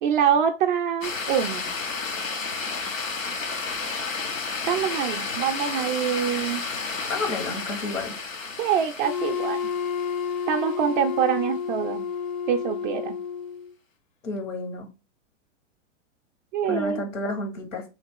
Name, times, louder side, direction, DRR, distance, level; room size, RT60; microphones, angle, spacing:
voice 1, 0.0-1.6 4.7-6.7 8.6-9.6 10.5-12.0 12.5-13.2 16.5-17.0, right 8 dB, 40° right, 3 dB, 0.4 m, -25 dB
sound 1, 1.0-11.3, left 4 dB, 90° left, 0.9 m, -32 dB
voice 2, 7.1-8.1 14.2-14.9 16.7-17.8, left 2 dB, 70° left, 3 dB, 1.7 m, -31 dB
Wind instrument woodwind instrument, 9.0-13.7, left 7 dB, 40° left, 0.7 m, -30 dB
3.2 x 2.9 x 4.6 m, 0.30 s
hypercardioid pair, 100°, 38 cm